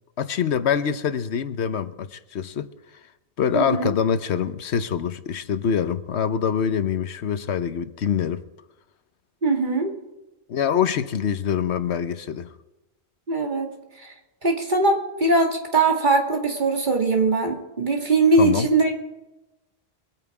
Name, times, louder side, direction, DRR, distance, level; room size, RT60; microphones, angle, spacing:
voice 1, 0.2-2.7 3.4-8.4 10.5-12.5 18.4-18.7, left 7 dB, 90° left, 11 dB, 1.1 m, -25 dB
voice 2, 3.5-3.9 9.4-9.9 13.3-14.1 14.4-18.9, right 3 dB, 45° right, 2 dB, 2.3 m, -21 dB
23.0 x 9.1 x 4.8 m, 0.98 s
omnidirectional pair, 1.1 m